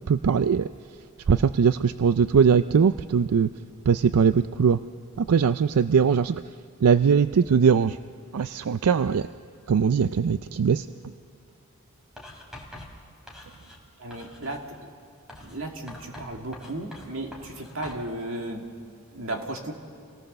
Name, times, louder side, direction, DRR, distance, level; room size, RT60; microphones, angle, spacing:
voice 1, 0.1-0.7 1.3-3.5 3.9-4.8 5.3-6.4 6.8-8.0 8.3-9.2 9.7-10.8, right 6 dB, 90° right, 12 dB, 0.4 m, -20 dB
Writing, 12.2-13.8 14.1-14.6 15.3-18.1, left 1 dB, 5° right, 2.9 m, -45 dB
voice 2, 14.0-14.7 15.4-18.6 19.1-19.7, right 1 dB, 60° right, 3 dB, 2.2 m, -34 dB
27.0 x 18.0 x 6.7 m, 2.4 s
head